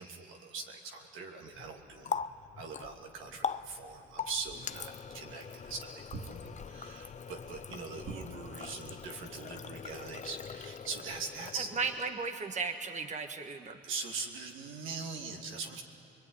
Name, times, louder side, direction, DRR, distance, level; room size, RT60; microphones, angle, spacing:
voice 1, 0.0-2.2 2.5-11.7 13.8-15.8, right 4 dB, 90° right, 1 dB, 2.9 m, -42 dB
Water tap faucet, 1.5-12.3, left 6 dB, 35° left, 0.7 m, -42 dB
sound 1, 6.1-6.9 8.0-8.8, right 3 dB, 60° right, 2.5 m, -45 dB
voice 2, 11.8-13.8, right 4 dB, 35° right, 6 dB, 1.5 m, -35 dB
24.5 x 22.0 x 9.8 m, 2.8 s
cardioid pair, 90°, 20 cm